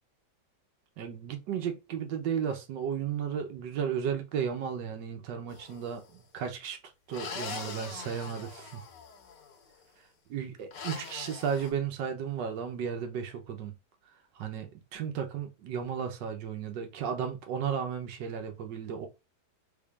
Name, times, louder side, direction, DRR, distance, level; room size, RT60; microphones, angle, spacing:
voice 1, 1.0-6.8 7.1-8.8 10.3-13.8 14.3-19.1, right 7 dB, 90° right, 1.5 m, -34 dB
sound 1, 5.5-6.1 7.1-9.6 10.7-11.7, left 5 dB, 80° left, 1.5 m, -42 dB
3.6 x 3.5 x 2.3 m
omnidirectional pair, 1.8 m